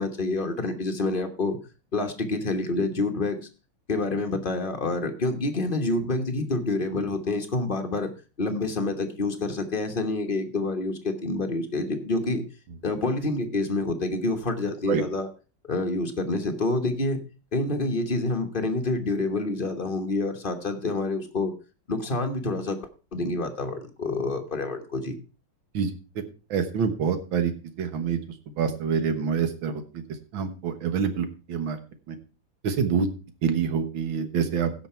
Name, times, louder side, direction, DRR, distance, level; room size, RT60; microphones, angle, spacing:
voice 1, 0.0-1.6 1.9-3.4 3.9-8.1 8.4-12.4 12.8-15.3 15.7-17.2 17.5-21.5 21.9-22.8 23.1-25.2, left 2 dB, 30° left, 5 dB, 1.1 m, -27 dB
voice 2, 26.5-27.5 27.8-28.2 28.6-30.0 30.3-31.8 32.1-32.2 32.6-33.1 33.4-34.9, right 6 dB, 70° right, 9 dB, 2.0 m, -26 dB
16.0 x 5.9 x 4.4 m, 0.34 s
omnidirectional pair, 2.3 m